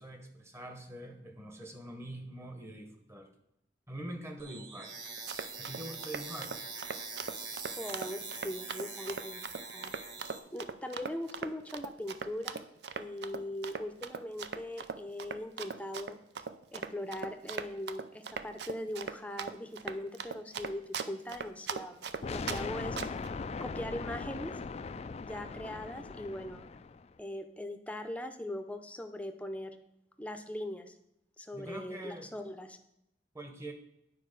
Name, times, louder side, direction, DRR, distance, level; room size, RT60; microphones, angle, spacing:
voice 1, 0.0-3.3 3.9-4.9 5.6-6.5 22.6-22.8 31.5-32.3 33.3-33.7, right 1 dB, 15° right, 5 dB, 1.1 m, -44 dB
sound 1, 4.4-10.4, right 4 dB, 85° right, 1.4 m, -43 dB
Run, 5.1-22.6 23.0-23.3, right 5 dB, 60° right, 0.5 m, -39 dB
voice 2, 7.8-9.4 9.7-9.9 10.5-12.6 13.0-16.2 16.7-23.0 23.6-24.6 25.2-26.7 27.2-29.8 30.2-31.0 31.4-32.8, left 1 dB, 10° left, 7 dB, 0.7 m, -40 dB
sound 2, 22.2-27.1, left 4 dB, 35° left, 0.3 m, -39 dB
9.7 x 4.8 x 6.6 m, 0.79 s
head